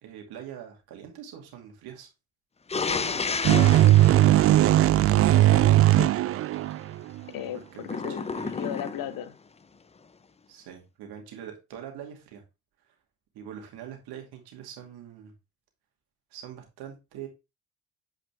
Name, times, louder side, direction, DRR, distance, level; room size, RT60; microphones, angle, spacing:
voice 1, 0.0-2.1 7.5-8.5 10.5-12.4 12.9-13.0 13.3-15.3 16.3-17.3, right 9 dB, 65° right, 2.4 m, -43 dB
sound 1, 2.7-5.4 7.8-9.2, left 4 dB, 15° left, 0.6 m, -32 dB
voice 2, 2.8-3.8 4.4-4.6 5.4-6.1 7.3-9.3, left 10 dB, 55° left, 1.0 m, -37 dB
sound 2, 3.4-7.2, right 14 dB, 35° right, 0.4 m, -19 dB
8.6 x 5.0 x 3.4 m
hypercardioid pair, 55°, 41 cm